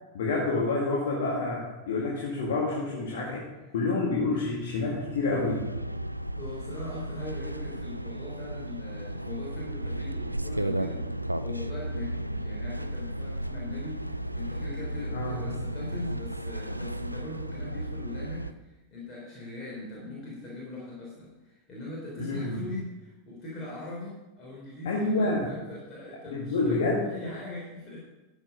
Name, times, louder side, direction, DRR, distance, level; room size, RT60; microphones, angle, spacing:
voice 1, 0.1-3.4 3.7-5.7 15.1-15.4 22.2-22.6 24.9-25.5 26.3-27.1, left 3 dB, 60° left, -2 dB, 1.9 m, -28 dB
sound 1, 4.4-18.5, right 1 dB, 85° right, 0.4 m, -34 dB
voice 2, 6.3-28.1, left 2 dB, 25° left, -5 dB, 3.5 m, -41 dB
12.0 x 7.1 x 5.2 m, 1.1 s
figure-of-eight pair, 90°, 0 cm